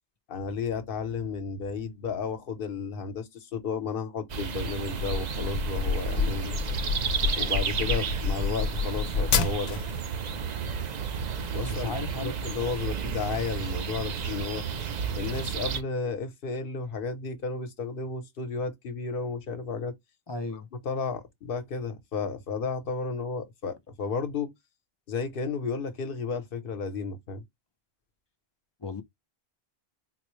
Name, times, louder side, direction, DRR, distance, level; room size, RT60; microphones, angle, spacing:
voice 1, 0.3-6.5 7.4-9.8 11.5-11.9 12.2-14.6 15.1-19.9 20.8-24.5 25.1-27.4, left 4 dB, 65° left, 1.0 m, -33 dB
sound 1, 4.3-15.8, right 6 dB, 50° right, 0.6 m, -32 dB
sound 2, 5.0-10.0, left 5 dB, 85° left, 0.9 m, -29 dB
voice 2, 11.6-12.3 20.3-20.7 28.8-29.0, left 3 dB, 40° left, 0.4 m, -35 dB
4.2 x 2.1 x 3.0 m
omnidirectional pair, 1.0 m